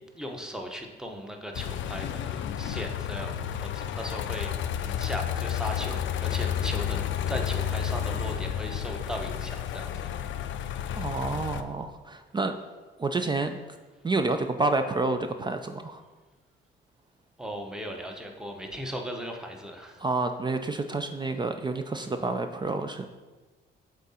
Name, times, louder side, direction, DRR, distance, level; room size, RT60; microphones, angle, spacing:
voice 1, 0.1-10.1 10.9-11.1 17.4-20.0, equal, 5° right, 3 dB, 0.9 m, -38 dB
sound 1, 1.5-11.6, left 9 dB, 70° left, 0.4 m, -31 dB
voice 2, 11.0-12.5 13.0-13.6 14.0-16.0 20.0-23.1, right 3 dB, 25° right, 7 dB, 0.4 m, -29 dB
7.6 x 3.7 x 4.2 m, 1.3 s
cardioid pair, 90°, 20 cm